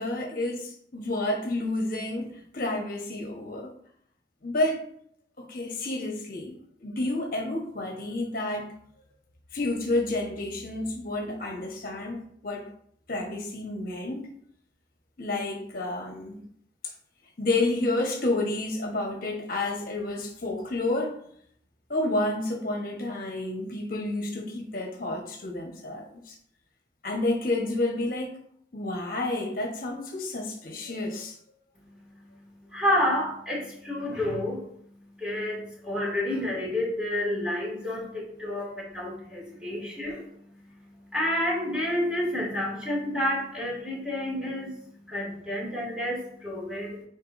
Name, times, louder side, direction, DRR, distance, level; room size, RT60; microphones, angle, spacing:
voice 1, 0.0-3.7 4.4-4.8 5.4-6.5 6.8-8.7 9.5-12.7 13.1-14.3 15.2-16.4 16.8-16.9 17.4-21.2 21.9-26.4 27.0-28.4 28.7-31.4, left 2 dB, 50° left, 1 dB, 1.2 m, -30 dB
voice 2, 32.7-34.7 35.2-40.3 41.1-44.7 45.1-47.0, left 1 dB, 5° right, -5 dB, 2.3 m, -29 dB
9.5 x 4.4 x 2.6 m, 0.66 s
head